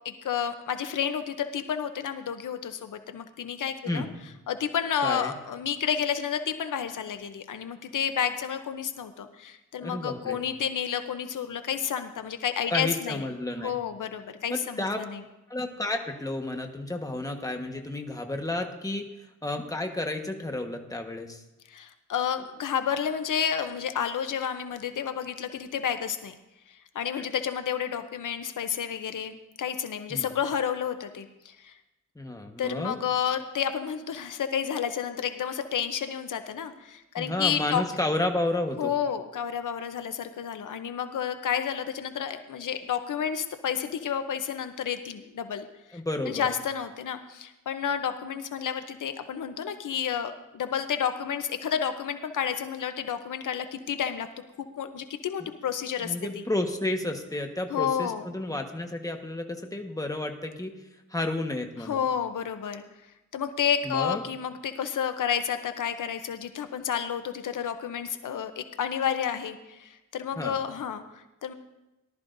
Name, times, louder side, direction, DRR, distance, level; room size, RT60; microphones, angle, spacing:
voice 1, 0.0-4.1 4.5-13.2 13.6-15.2 21.7-26.3 26.7-31.7 32.6-37.8 38.8-45.6 46.3-54.3 54.8-56.4 57.7-58.2 61.8-62.8 63.3-71.5, left 8 dB, 80° left, 9 dB, 0.8 m, -30 dB
voice 2, 5.0-5.3 9.8-10.4 12.7-13.8 14.5-15.0 15.5-19.1 19.4-21.4 27.2-27.3 30.1-30.3 32.1-32.9 37.2-38.9 45.9-46.5 55.4-55.5 56.0-60.7 61.1-62.0 63.8-64.2 70.3-70.6, left 2 dB, 10° left, 4 dB, 1.3 m, -31 dB
18.0 x 12.5 x 2.6 m, 0.97 s
wide cardioid pair, 90°, 31 cm